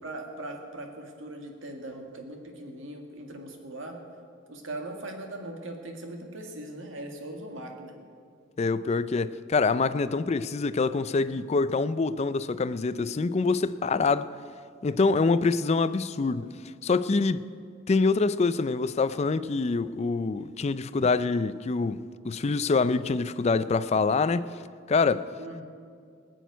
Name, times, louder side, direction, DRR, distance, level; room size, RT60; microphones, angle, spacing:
voice 1, 0.0-4.0 4.5-8.0 25.4-25.6, right 1 dB, 70° right, 1.9 m, -40 dB
voice 2, 8.6-14.3 14.8-16.5 16.8-17.5 17.9-24.5 24.9-25.3, left 4 dB, 35° left, 0.4 m, -25 dB
18.5 x 6.4 x 9.2 m
head